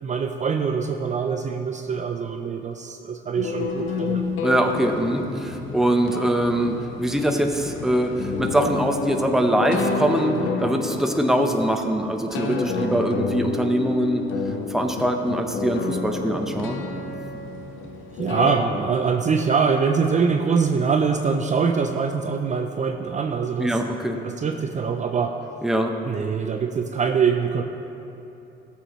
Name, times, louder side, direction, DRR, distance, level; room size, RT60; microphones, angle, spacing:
voice 1, 0.0-4.2 18.2-23.8 24.2-25.4 26.0-27.6, right 5 dB, 35° right, 5 dB, 0.5 m, -23 dB
sound 1, 3.4-18.7, left 4 dB, 85° left, 0.8 m, -30 dB
voice 2, 4.4-14.2 14.7-16.8 23.6-24.2 25.6-26.0, right 1 dB, ahead, 3 dB, 0.8 m, -23 dB
14.0 x 7.0 x 3.1 m, 2.9 s
cardioid pair, 90°, 20 cm